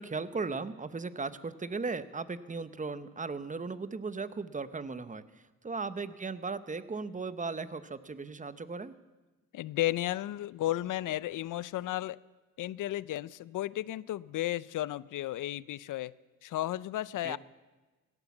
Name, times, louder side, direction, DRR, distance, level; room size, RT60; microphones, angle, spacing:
voice 1, 0.0-5.2 5.6-9.0 17.2-17.4, right 4 dB, 25° right, 13 dB, 0.9 m, -37 dB
voice 2, 9.5-12.2 12.6-16.1 16.4-17.4, left 14 dB, 70° left, 20 dB, 0.5 m, -33 dB
16.5 x 12.0 x 7.2 m, 1.2 s
cardioid pair, 65°, 32 cm